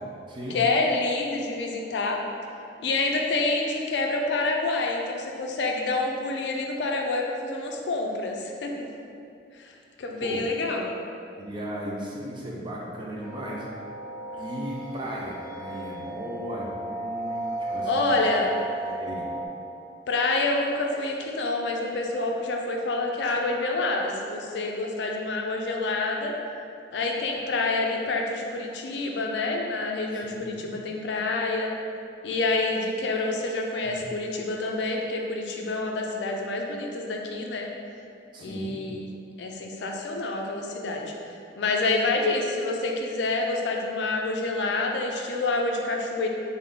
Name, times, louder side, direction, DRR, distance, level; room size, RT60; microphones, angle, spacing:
voice 1, 0.5-2.2 2.8-8.9 9.6-9.7 10.0-10.9 17.8-18.5 20.1-26.3 26.9-31.7 32.2-37.7 38.4-39.1 39.4-41.1 41.6-46.3, left 3 dB, 75° left, 1 dB, 0.4 m, -27 dB
voice 2, 11.4-13.6 14.3-18.0 18.8-19.3 30.1-30.7 33.8-34.0 38.3-38.8, equal, 25° right, -4 dB, 0.5 m, -36 dB
sound 1, 13.2-19.5, right 2 dB, 5° left, 0.8 m, -34 dB
3.5 x 2.6 x 3.6 m, 2.5 s
head